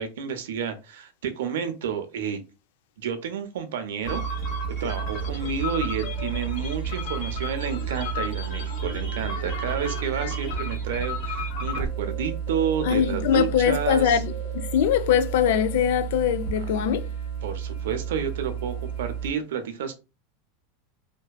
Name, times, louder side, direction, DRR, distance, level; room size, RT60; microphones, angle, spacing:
voice 1, 0.0-2.4 3.0-4.3 4.8-14.2 16.6-16.7 17.4-19.9, right 7 dB, 80° right, 0.5 m, -30 dB
sound 1, 4.0-19.3, right 5 dB, 55° left, 1.0 m, -31 dB
voice 2, 12.8-17.0, left 9 dB, 70° left, 0.3 m, -22 dB
2.6 x 2.2 x 2.2 m
supercardioid pair, 130°, 0 cm